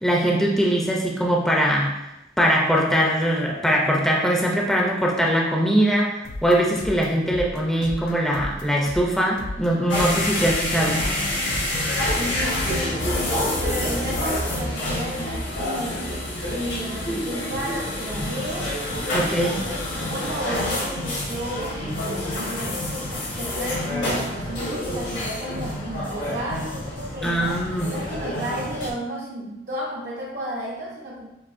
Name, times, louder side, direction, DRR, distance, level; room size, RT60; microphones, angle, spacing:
voice 1, 0.0-1.9 2.4-6.1 6.4-11.0 19.1-19.6 27.2-27.9, equal, ahead, -2 dB, 0.5 m, -21 dB
sound 1, 6.2-14.6, left 1 dB, 90° left, 0.5 m, -36 dB
sound 2, 9.9-28.9, left 1 dB, 75° left, 1.2 m, -27 dB
voice 2, 12.2-16.0 16.5-18.7 19.2-31.3, equal, 50° right, -4 dB, 0.7 m, -33 dB
7.0 x 2.6 x 2.6 m, 0.91 s
head